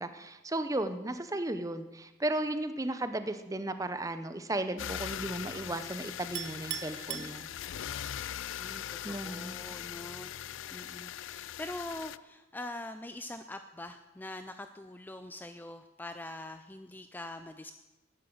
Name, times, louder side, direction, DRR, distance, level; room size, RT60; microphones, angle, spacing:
voice 1, 0.0-7.5 9.0-9.6, right 1 dB, 15° right, 10 dB, 0.7 m, -35 dB
sound 1, 4.8-12.2, left 10 dB, 75° left, 0.4 m, -40 dB
Chink clink, 6.4-8.0, right 11 dB, 60° right, 0.7 m, -40 dB
voice 2, 8.6-17.7, left 1 dB, 10° left, 8 dB, 0.4 m, -44 dB
12.5 x 10.0 x 7.8 m, 1.1 s
head